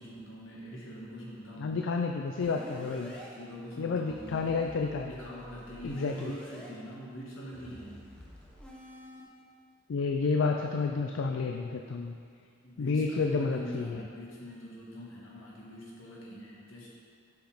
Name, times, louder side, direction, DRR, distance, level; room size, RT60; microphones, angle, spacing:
voice 1, 0.0-1.8 2.7-4.6 5.0-8.0 12.6-16.9, equal, 85° left, -5 dB, 1.6 m, -44 dB
voice 2, 1.6-3.1 3.8-5.1 5.8-6.3 9.9-12.2 12.8-14.0, left 4 dB, 65° left, 3 dB, 0.4 m, -30 dB
sound 1, 2.4-3.3 4.1-6.7 7.5-9.2, equal, 5° left, 1.0 m, -48 dB
6.4 x 5.1 x 4.9 m, 2.2 s
head